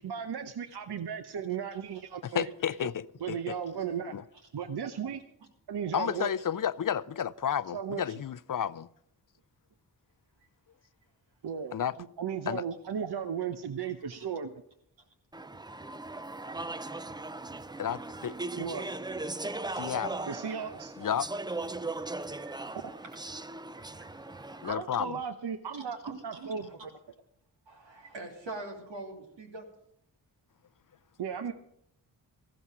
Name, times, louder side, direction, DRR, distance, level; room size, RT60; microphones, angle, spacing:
voice 1, 0.0-2.5 2.8-2.9 3.2-4.1 4.5-5.2 5.7-6.3 7.7-8.2 11.4-14.6 18.6-18.9 20.3-20.9 22.8-22.9 24.6-26.9 31.2-31.5, right 7 dB, 60° right, 0.9 m, -36 dB
voice 2, 1.7-2.0 6.1-6.2 13.8-14.3 22.4-23.0 23.7-24.6 25.7-25.9 26.3-26.7 27.7-29.7, right 2 dB, 80° right, 2.8 m, -46 dB
voice 3, 2.2-3.6 4.1-4.2 5.9-8.9 11.7-12.0 12.5-12.6 17.8-18.4 19.8-20.2 21.0-21.3 24.6-25.2, left 9 dB, 50° left, 0.5 m, -32 dB
Speech / Chatter, 15.3-24.7, right 2 dB, 10° right, 0.4 m, -38 dB
14.0 x 12.5 x 4.9 m
cardioid pair, 50°, 44 cm